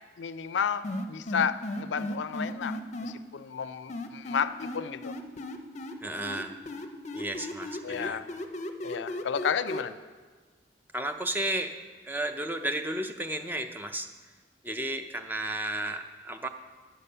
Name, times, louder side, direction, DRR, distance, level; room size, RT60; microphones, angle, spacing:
voice 1, 0.2-5.1 7.8-8.3 8.8-10.0, left 7 dB, 90° left, 13 dB, 0.4 m, -32 dB
sound 1, 0.8-3.1 3.9-5.9 6.2-9.8, left 1 dB, 40° left, 0.6 m, -35 dB
voice 2, 6.0-6.6 7.1-8.2 10.9-11.7 12.0-14.1 14.6-16.5, right 1 dB, 10° right, 7 dB, 0.5 m, -33 dB
10.5 x 6.9 x 5.5 m, 1.4 s
head